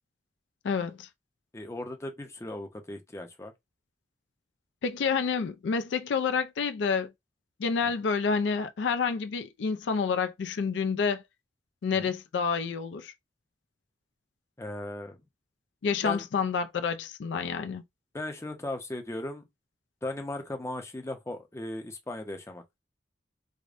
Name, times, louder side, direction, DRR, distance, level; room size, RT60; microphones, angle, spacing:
voice 1, 0.6-1.1 4.8-7.1 7.6-11.2 11.8-13.1 15.8-17.8, left 5 dB, 80° left, 0.4 m, -28 dB
voice 2, 1.5-3.5 12.0-12.1 14.6-15.2 16.0-16.3 18.1-19.5 20.0-22.6, left 1 dB, 15° left, 0.6 m, -37 dB
4.8 x 2.1 x 2.5 m
head